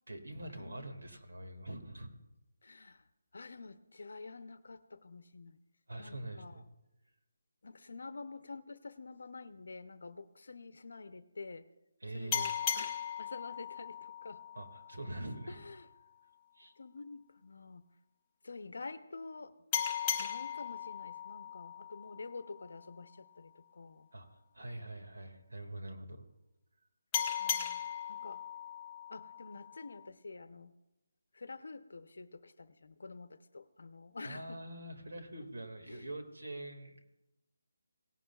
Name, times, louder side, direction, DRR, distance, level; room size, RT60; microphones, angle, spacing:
voice 1, 0.1-2.1 2.8-2.9 5.9-6.6 12.0-12.5 14.5-15.6 16.6-16.7 24.1-26.2 34.2-37.2, right 1 dB, 85° right, 5 dB, 2.1 m, -44 dB
voice 2, 2.6-3.0 3.3-5.6 6.0-6.6 7.6-11.7 12.1-14.4 15.5-15.9 16.8-17.8 18.4-19.5 20.2-24.1 27.3-27.8 28.1-28.4 29.1-30.7 31.3-34.6 35.9-36.0, left 3 dB, 55° left, 13 dB, 0.7 m, -48 dB
sound 1, 12.3-15.5 19.7-22.9 27.1-30.1, left 8 dB, 10° left, 0.4 m, -38 dB
18.0 x 11.0 x 2.4 m, 0.94 s
hypercardioid pair, 180°, 0 cm